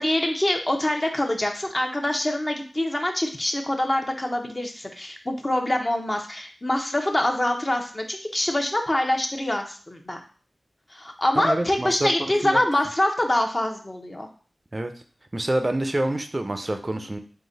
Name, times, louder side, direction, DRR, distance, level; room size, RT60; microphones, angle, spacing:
voice 1, 0.0-10.2 10.9-14.3, left 1 dB, 35° left, 2 dB, 0.8 m, -25 dB
voice 2, 11.4-12.6 14.7-14.9 15.3-17.2, right 1 dB, 35° right, 6 dB, 0.5 m, -27 dB
4.0 x 2.9 x 3.9 m, 0.41 s
cardioid pair, 45°, 0 cm